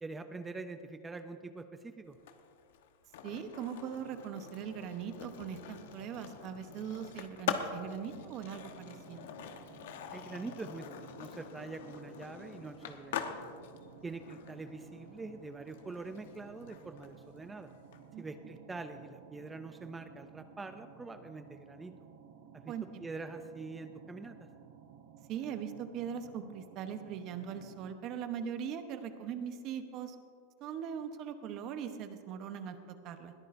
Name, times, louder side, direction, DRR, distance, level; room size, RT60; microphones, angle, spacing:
voice 1, 0.0-2.2 10.1-13.5 14.0-17.7 18.2-22.0 22.5-22.7 23.0-24.5, right 3 dB, 10° right, 8 dB, 0.4 m, -44 dB
Skateboard, 2.1-18.0, left 8 dB, 70° left, 1.0 m, -44 dB
voice 2, 3.2-9.3 18.1-18.2 22.7-22.8 25.3-30.2 30.6-33.3, right 8 dB, 35° right, 8 dB, 0.9 m, -40 dB
sound 1, 8.1-28.0, right 8 dB, 60° right, 0.9 m, -56 dB
20.5 x 13.5 x 2.6 m, 2.4 s
supercardioid pair, 155°, 0 cm